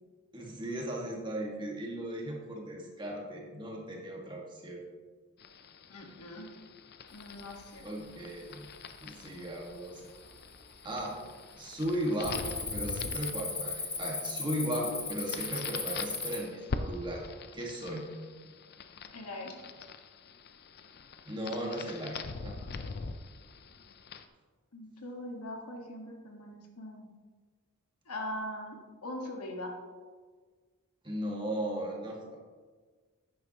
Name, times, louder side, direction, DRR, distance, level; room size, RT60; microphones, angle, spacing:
voice 1, 0.3-4.8 7.8-8.7 9.0-10.0 10.8-11.2 11.6-17.2 17.5-18.1 21.3-22.7 31.0-32.4, right 1 dB, 20° right, -2 dB, 1.7 m, -36 dB
sound 1, 5.4-24.3, left 4 dB, 45° left, 0.5 m, -44 dB
voice 2, 5.9-6.5 7.1-7.8 19.1-19.6 24.7-27.1 28.1-29.7, left 1 dB, 85° left, 1 dB, 1.6 m, -41 dB
Cricket, 7.4-7.8 8.3-8.7 9.3-9.4 10.0-10.6 10.9-11.2 11.5-16.4, left 4 dB, 15° left, 1.1 m, -37 dB
11.0 x 9.3 x 3.0 m, 1.5 s
head